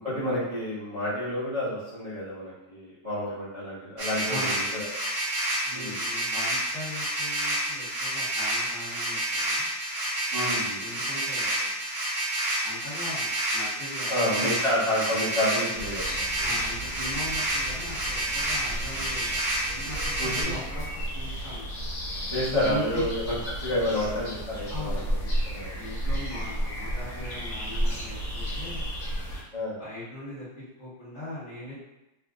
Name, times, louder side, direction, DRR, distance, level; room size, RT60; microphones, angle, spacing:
voice 1, 0.0-4.9 5.7-6.0 10.3-10.8 14.1-16.5 20.2-20.5 22.3-25.0 25.4-25.8 29.5-29.8, left 1 dB, 25° right, -13 dB, 0.9 m, -29 dB
sound 1, 4.0-20.4, right 1 dB, 65° right, 1.5 m, -29 dB
voice 2, 4.3-4.8 5.6-9.6 10.8-11.7 12.6-14.5 16.4-20.8 21.1-21.7 22.5-22.8 24.7-28.9 29.8-30.5 30.8-31.7, left 1 dB, 30° left, -12 dB, 1.4 m, -40 dB
sound 2, 15.7-29.4, equal, 65° left, 1.2 m, -33 dB
3.5 x 2.7 x 2.3 m, 0.96 s
omnidirectional pair, 1.7 m